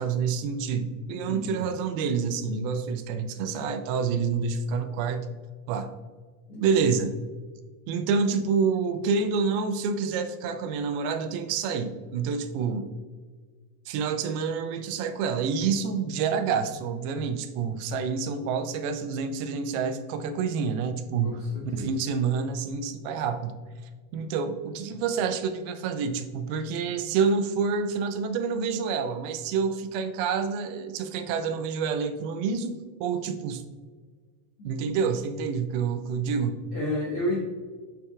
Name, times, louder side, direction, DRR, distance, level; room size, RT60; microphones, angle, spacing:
voice 1, 0.0-5.3 5.7-5.9 6.6-7.2 7.9-12.9 13.9-21.5 21.7-23.5 24.1-33.6 34.6-36.6, right 5 dB, 85° right, 8 dB, 2.4 m, -28 dB
voice 2, 1.2-1.6 6.5-6.8 21.2-21.9 36.7-37.4, left 1 dB, 70° left, -5 dB, 1.4 m, -31 dB
11.0 x 4.4 x 2.3 m, 1.5 s
omnidirectional pair, 4.4 m